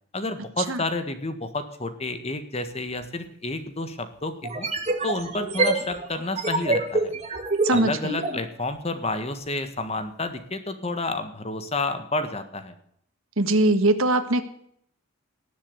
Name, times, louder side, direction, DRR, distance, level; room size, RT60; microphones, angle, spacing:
voice 1, 0.1-4.7 5.0-7.1 7.7-12.7, left 2 dB, 30° left, 9 dB, 1.6 m, -30 dB
sound 1, 3.0-3.1 4.4-8.4, right 2 dB, 30° right, 2.2 m, -26 dB
voice 2, 7.6-8.2 13.4-14.4, right 2 dB, 75° right, 10 dB, 1.6 m, -21 dB
19.0 x 7.3 x 8.2 m, 0.68 s
head